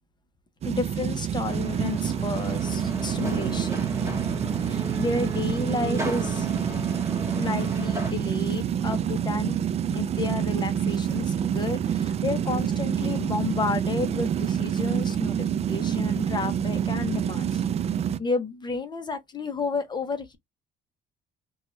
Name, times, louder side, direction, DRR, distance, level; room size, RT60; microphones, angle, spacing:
voice 1, 0.6-3.9 4.6-6.5 7.3-9.6 9.9-17.6 18.2-20.4, left 4 dB, 25° left, 0.7 m, -31 dB
sound 1, 0.6-18.2, right 9 dB, 40° right, 0.3 m, -27 dB
sound 2, 1.4-8.1, right 1 dB, 15° right, 1.2 m, -35 dB
2.6 x 2.3 x 3.0 m
cardioid pair, 110°, 17 cm